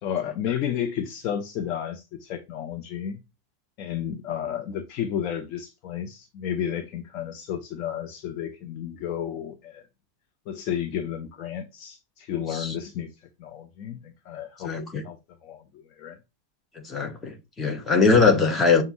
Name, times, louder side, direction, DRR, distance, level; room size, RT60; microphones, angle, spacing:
voice 1, 0.0-3.2 3.8-9.8 10.5-13.1 13.4-15.2 15.4-16.2, left 9 dB, 40° left, 0.6 m, -32 dB
voice 2, 14.6-15.0 16.8-18.8, left 4 dB, 20° left, 1.2 m, -21 dB
6.9 x 2.4 x 2.9 m
figure-of-eight pair, 90°, 0 cm